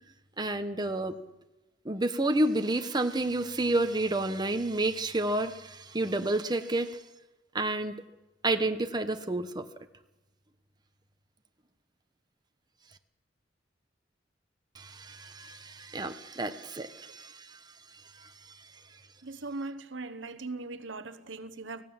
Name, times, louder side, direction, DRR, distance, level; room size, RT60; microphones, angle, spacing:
voice 1, 0.4-1.1 1.8-7.0 7.5-8.0 8.4-9.6 14.7-17.6 17.9-18.7, right 2 dB, 20° right, 1.1 m, -30 dB
voice 2, 19.2-21.8, right 3 dB, 75° right, 1.1 m, -39 dB
19.0 x 15.5 x 8.9 m
head